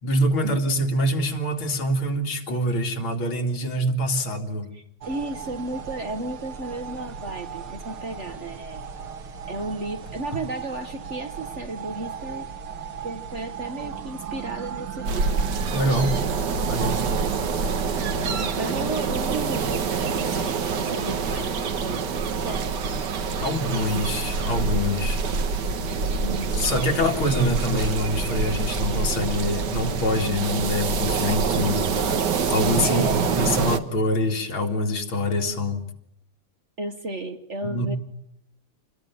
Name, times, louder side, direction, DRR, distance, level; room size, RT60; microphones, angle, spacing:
voice 1, 0.0-4.7 15.7-16.2 16.7-17.0 23.4-25.2 26.5-35.9 37.6-38.0, left 1 dB, 80° left, 4 dB, 3.0 m, -25 dB
voice 2, 4.7-8.9 9.5-12.5 13.0-15.4 18.2-22.7 26.2-26.6 32.8-33.4 36.8-38.0, right 2 dB, 40° right, 8 dB, 1.2 m, -34 dB
sound 1, 5.0-18.5, right 7 dB, 90° right, 2.4 m, -36 dB
sound 2, 15.0-33.8, right 5 dB, 60° right, 1.8 m, -26 dB
26.5 x 20.5 x 9.3 m, 0.74 s
omnidirectional pair, 2.3 m